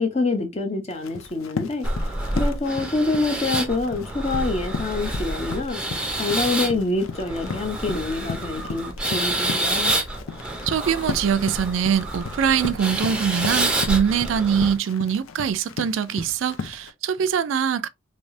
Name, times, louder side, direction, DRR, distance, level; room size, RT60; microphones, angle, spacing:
voice 1, 0.0-1.9 2.3-5.8 6.1-9.9, left 3 dB, 30° left, 0.6 m, -26 dB
Run, 0.9-16.9, left 5 dB, 90° left, 0.5 m, -36 dB
sound 1, 1.8-14.7, right 1 dB, 5° right, 0.5 m, -28 dB
voice 2, 10.6-17.9, right 7 dB, 70° right, 0.3 m, -23 dB
3.3 x 2.7 x 2.6 m
head